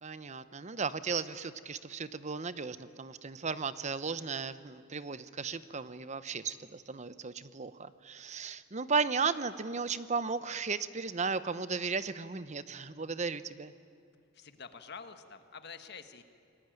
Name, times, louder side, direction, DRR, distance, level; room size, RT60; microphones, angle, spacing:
voice 1, 0.0-13.7, right 5 dB, 35° right, 14 dB, 0.8 m, -35 dB
voice 2, 14.3-16.2, left 5 dB, 55° left, 8 dB, 1.5 m, -47 dB
28.5 x 20.0 x 9.1 m, 2.3 s
head